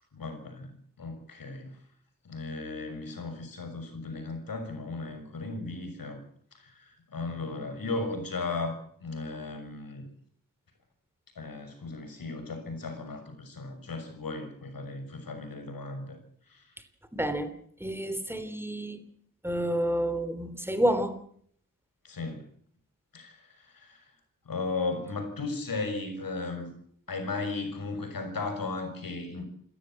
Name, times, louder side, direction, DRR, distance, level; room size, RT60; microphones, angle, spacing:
voice 1, 0.1-0.7 1.0-1.8 2.2-6.2 6.5-10.1 11.4-16.2 16.5-16.7 22.0-22.5 23.1-24.0 24.4-26.7 27.1-29.5, left 3 dB, 85° left, 6 dB, 6.4 m, -36 dB
voice 2, 17.1-17.5 17.8-19.0 19.4-21.2, right 1 dB, 5° right, 11 dB, 3.4 m, -29 dB
28.5 x 15.0 x 7.7 m, 0.62 s
wide cardioid pair, 110°, 33 cm